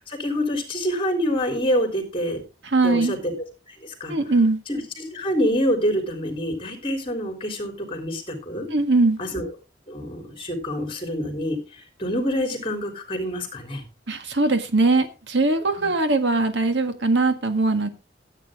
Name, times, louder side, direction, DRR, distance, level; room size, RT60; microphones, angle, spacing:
voice 1, 0.1-2.4 2.8-3.3 4.0-4.1 4.7-8.7 9.2-9.5 9.9-11.6 12.0-13.8 15.8-15.9, equal, 30° left, 4 dB, 3.5 m, -26 dB
voice 2, 2.6-3.2 4.1-4.6 8.7-9.2 14.1-17.9, right 3 dB, 85° right, 7 dB, 1.7 m, -21 dB
13.5 x 8.9 x 3.7 m, 0.33 s
head